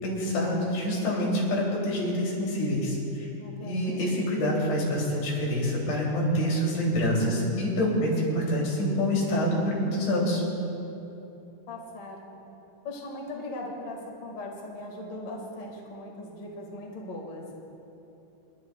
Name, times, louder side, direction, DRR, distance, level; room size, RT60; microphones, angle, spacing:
voice 1, 0.0-3.3 3.6-10.4, equal, 85° left, -4 dB, 5.4 m, -26 dB
voice 2, 3.4-4.1 11.7-12.4 12.8-17.5, left 2 dB, 40° left, -2 dB, 1.6 m, -39 dB
29.5 x 11.5 x 2.4 m, 2.9 s
omnidirectional pair, 5.1 m